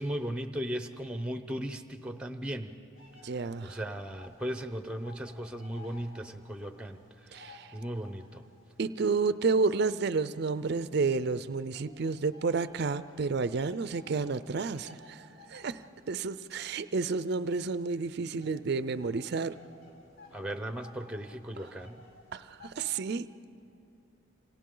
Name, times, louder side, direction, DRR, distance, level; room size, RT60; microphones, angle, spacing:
voice 1, 0.0-2.7 3.3-8.4 20.3-22.0, equal, 5° right, 8 dB, 0.7 m, -37 dB
sound 1, 2.9-4.5 4.8-8.5 9.0-11.1 11.7-22.8, left 3 dB, 60° left, 5.7 m, -56 dB
voice 2, 3.2-3.8 7.3-7.7 8.8-15.2 15.5-19.5 22.3-23.3, right 4 dB, 50° right, 14 dB, 0.4 m, -30 dB
29.0 x 26.0 x 3.8 m, 2.6 s
head